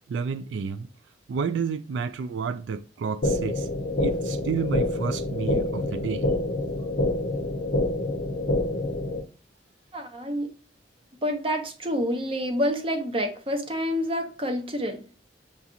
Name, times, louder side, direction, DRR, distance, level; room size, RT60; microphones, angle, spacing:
voice 1, 0.1-0.9 1.3-3.7 4.0-6.3, right 6 dB, 85° right, 0.3 m, -30 dB
sound 1, 3.2-9.2, left 1 dB, 60° left, 0.7 m, -27 dB
voice 2, 9.9-10.5 11.2-15.0, equal, 30° right, 0.8 m, -28 dB
6.7 x 2.4 x 2.7 m
head